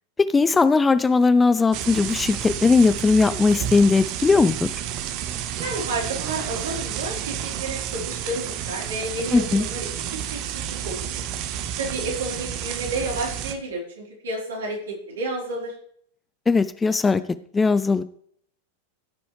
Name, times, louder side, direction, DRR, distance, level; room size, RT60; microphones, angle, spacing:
voice 1, 0.2-4.8 9.3-9.7 16.5-17.2 17.5-18.0, left 4 dB, 15° left, 14 dB, 0.4 m, -19 dB
sound 1, 1.7-13.5, right 10 dB, 40° right, 0.9 m, -31 dB
voice 2, 5.6-11.1 11.8-15.7, right 2 dB, 65° right, -2 dB, 4.0 m, -31 dB
15.0 x 6.9 x 3.3 m, 0.64 s
figure-of-eight pair, 90°, 0 cm